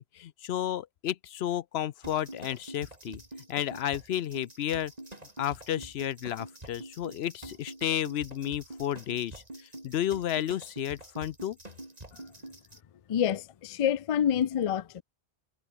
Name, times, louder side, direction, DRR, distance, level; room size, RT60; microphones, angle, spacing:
voice 1, 0.0-3.2 3.5-4.9 5.4-11.6, left 11 dB, 70° left, 0.8 m, -32 dB
sound 1, 2.0-12.8, right 1 dB, 35° right, 4.4 m, -46 dB
voice 2, 13.1-15.0, left 9 dB, 55° left, 0.3 m, -27 dB
omnidirectional pair, 1.1 m